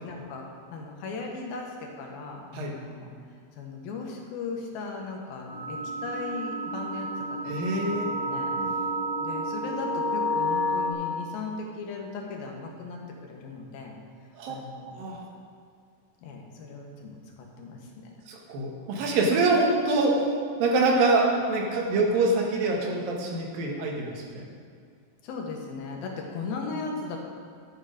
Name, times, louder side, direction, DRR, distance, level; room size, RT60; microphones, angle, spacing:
voice 1, 0.0-3.1 3.6-7.5 7.9-14.0 14.5-15.0 16.2-18.1 25.2-27.2, left 4 dB, 80° left, 1 dB, 3.1 m, -37 dB
sound 1, 5.5-10.9, equal, ahead, 2.4 m, -30 dB
voice 2, 7.5-8.1 8.6-8.7 14.3-14.6 14.9-15.2 18.3-20.2 20.6-24.5, right 2 dB, 75° right, 0 dB, 3.1 m, -25 dB
12.0 x 8.1 x 5.1 m, 2.3 s
omnidirectional pair, 4.1 m